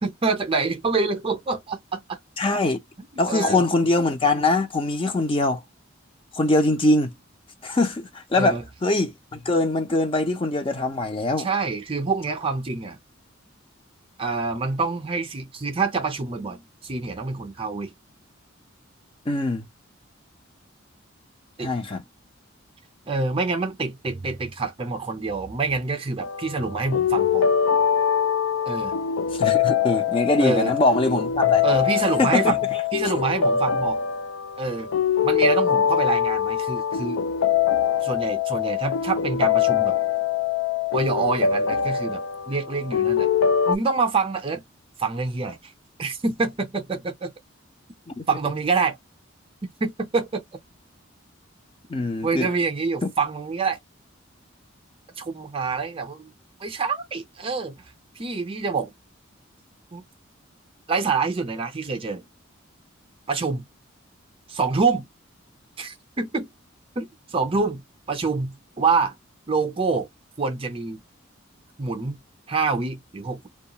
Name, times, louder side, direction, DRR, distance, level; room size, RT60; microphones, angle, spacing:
voice 1, 0.0-2.2 3.3-3.6 8.3-8.6 11.4-13.0 14.2-17.9 21.6-21.7 23.1-27.5 28.7-28.9 30.4-30.8 31.6-32.6 32.9-34.0 34.6-34.9 35.2-37.2 38.0-40.0 40.9-43.3 43.7-44.6 45.0-45.7 46.0-47.3 48.3-49.0 49.8-50.4 52.2-53.8 55.2-56.3 56.6-57.8 58.2-58.9 59.9-60.0 60.9-62.2 63.3-63.7 64.5-65.1 65.8-66.5 67.0-69.1 69.5-70.1 70.4-71.0 71.8-72.2 72.5-73.5, right 4 dB, 25° right, 0.5 m, -26 dB
voice 2, 2.4-2.8 3.2-5.6 6.3-7.1 7.6-11.5 19.3-19.7 21.6-22.0 29.3-31.6 32.2-32.6 48.1-48.2 51.9-52.5 53.0-53.1, left 2 dB, 25° left, 0.5 m, -22 dB
sound 1, 26.2-43.8, left 8 dB, 80° left, 0.4 m, -23 dB
2.3 x 2.3 x 2.8 m
head